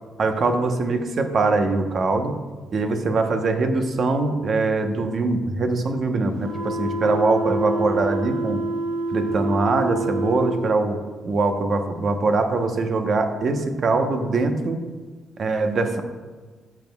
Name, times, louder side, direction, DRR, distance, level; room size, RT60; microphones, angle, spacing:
voice 1, 0.2-2.3 2.7-8.6 9.1-11.0 11.2-14.8 15.4-16.0, right 3 dB, 50° right, 6 dB, 1.0 m, -22 dB
sound 1, 6.4-10.7, right 1 dB, 85° right, 1.1 m, -27 dB
13.5 x 7.2 x 2.3 m, 1.4 s
cardioid pair, 90°, 0 cm